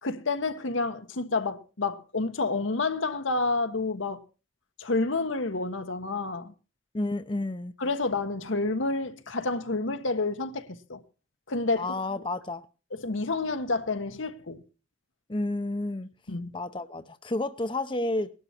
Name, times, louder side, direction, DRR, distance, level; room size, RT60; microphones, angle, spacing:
voice 1, 0.0-4.2 4.8-6.5 7.8-11.0 11.5-11.9 13.0-14.6 16.3-16.5, left 3 dB, 80° left, 1.2 m, -29 dB
voice 2, 6.9-7.7 11.8-12.6 15.3-16.1 16.5-18.3, left 2 dB, 25° left, 0.6 m, -30 dB
19.0 x 12.0 x 4.3 m
head